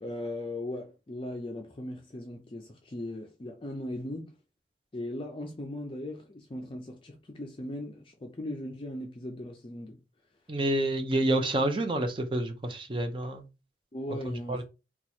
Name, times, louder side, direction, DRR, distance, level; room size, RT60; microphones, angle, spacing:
voice 1, 0.0-4.3 4.9-10.0 13.9-14.6, left 1 dB, 30° left, 0.4 m, -38 dB
voice 2, 10.5-13.4 14.5-14.6, right 1 dB, 30° right, 0.5 m, -28 dB
2.9 x 2.3 x 4.2 m
head